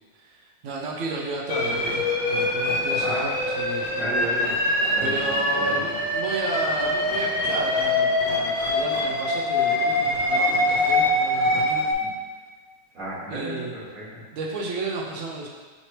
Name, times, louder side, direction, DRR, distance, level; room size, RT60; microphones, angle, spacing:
voice 1, 0.1-3.2 3.6-3.9 5.0-11.9 13.3-13.7 14.3-15.5, right 3 dB, 75° right, -2 dB, 0.7 m, -32 dB
sound 1, 1.5-11.9, left 1 dB, 85° left, 1.4 m, -24 dB
voice 2, 3.9-4.5 4.9-5.9 12.0-12.1 12.9-14.2, right 1 dB, 50° right, -9 dB, 1.9 m, -33 dB
5.8 x 3.1 x 2.9 m, 1.4 s
omnidirectional pair, 1.9 m